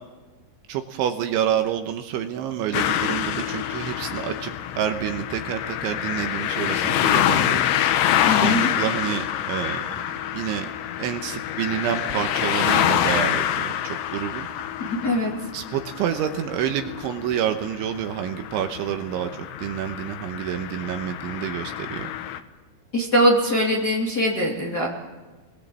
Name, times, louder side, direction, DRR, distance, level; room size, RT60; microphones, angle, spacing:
voice 1, 0.7-4.5 4.8-7.6 8.4-9.9 10.3-10.7 11.0-14.5 15.5-22.1, right 10 dB, 75° right, 6 dB, 3.2 m, -28 dB
sound 1, 2.7-22.4, left 11 dB, 75° left, 3.0 m, -26 dB
voice 2, 8.3-8.7 14.8-15.3 22.9-24.9, equal, 30° left, -4 dB, 2.2 m, -21 dB
30.0 x 21.5 x 7.6 m, 1.3 s
omnidirectional pair, 6.0 m